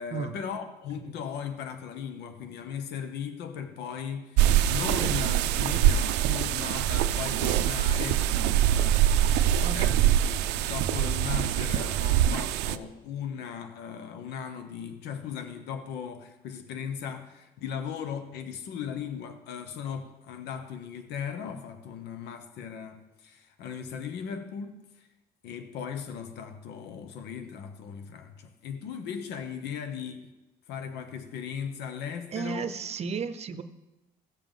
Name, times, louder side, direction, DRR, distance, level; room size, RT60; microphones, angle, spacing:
voice 1, 0.0-24.8 25.4-30.2 30.7-32.7, left 7 dB, 80° left, 1.0 m, -37 dB
sound 1, 4.4-12.8, right 11 dB, 90° right, 0.5 m, -24 dB
voice 2, 4.7-5.2 9.6-10.2 32.3-33.6, right 6 dB, 40° right, 0.7 m, -35 dB
16.5 x 7.0 x 3.8 m
cardioid pair, 110°, 17 cm